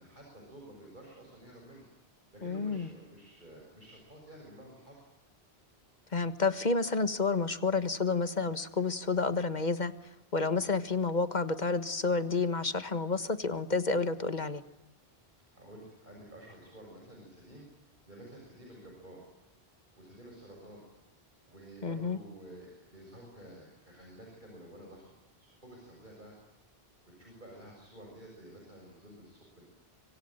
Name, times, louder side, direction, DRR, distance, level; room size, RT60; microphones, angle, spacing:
voice 1, 0.0-1.9 2.3-5.1 15.5-17.7 18.1-19.2 20.0-20.8 21.4-26.3 27.2-29.6, right 1 dB, 50° right, 0 dB, 7.1 m, -51 dB
voice 2, 2.4-2.9 6.1-9.9 10.3-14.6 21.8-22.2, left 4 dB, 45° left, 11 dB, 1.6 m, -30 dB
25.5 x 25.0 x 9.0 m, 0.94 s
omnidirectional pair, 1.1 m